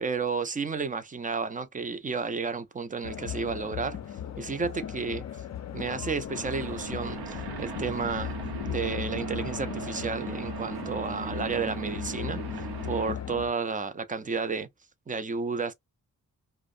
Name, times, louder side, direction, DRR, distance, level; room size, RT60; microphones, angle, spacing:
voice 1, 0.0-4.0 4.4-5.2 5.7-8.4 8.7-14.7 15.1-15.7, right 5 dB, 25° right, 0.3 m, -32 dB
sound 1, 3.0-13.5, left 9 dB, 50° left, 0.4 m, -37 dB
sound 2, 6.3-13.1, right 6 dB, 90° right, 0.7 m, -38 dB
2.5 x 2.0 x 2.4 m
wide cardioid pair, 95°, 37 cm